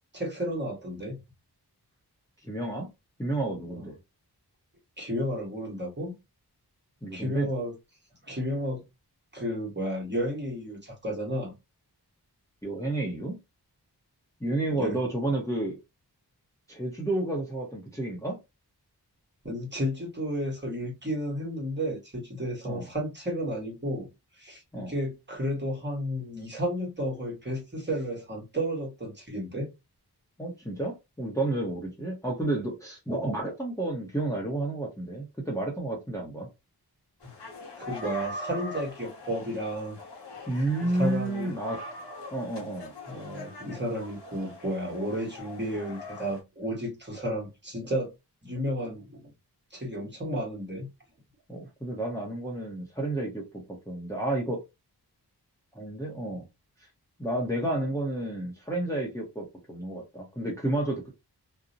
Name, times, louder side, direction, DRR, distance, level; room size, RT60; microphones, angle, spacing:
voice 1, 0.1-1.2 3.7-3.9 5.0-6.1 7.1-7.7 8.2-8.8 9.3-11.5 14.7-15.0 19.4-24.1 24.3-29.7 37.2-37.3 37.8-40.0 40.8-41.5 43.1-48.1 48.4-49.3 49.7-50.9, equal, 25° right, 1.1 m, -32 dB
voice 2, 2.4-2.9 3.2-4.0 7.0-7.5 12.6-13.4 14.4-15.8 16.7-18.4 22.6-22.9 24.7-24.9 30.4-36.5 40.5-41.8 42.3-42.9 51.5-54.6 55.7-56.5 57.2-61.1, right 2 dB, 10° left, 0.7 m, -31 dB
sound 1, 37.2-46.4, left 2 dB, 90° left, 0.9 m, -42 dB
2.5 x 2.0 x 2.6 m
wide cardioid pair, 65°, 40 cm